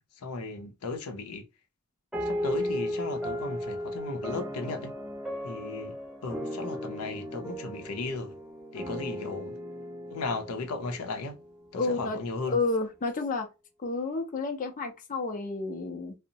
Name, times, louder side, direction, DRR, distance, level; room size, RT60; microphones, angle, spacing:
voice 1, 0.2-1.4 2.3-4.9 5.4-5.9 6.2-8.3 8.7-9.5 10.1-11.4 11.7-12.6, left 3 dB, 80° left, 0.6 m, -36 dB
sound 1, 2.1-11.9, equal, ahead, 0.7 m, -36 dB
voice 2, 11.7-12.2 12.5-13.5 13.8-16.2, left 3 dB, 35° left, 0.5 m, -30 dB
2.6 x 2.0 x 2.7 m
head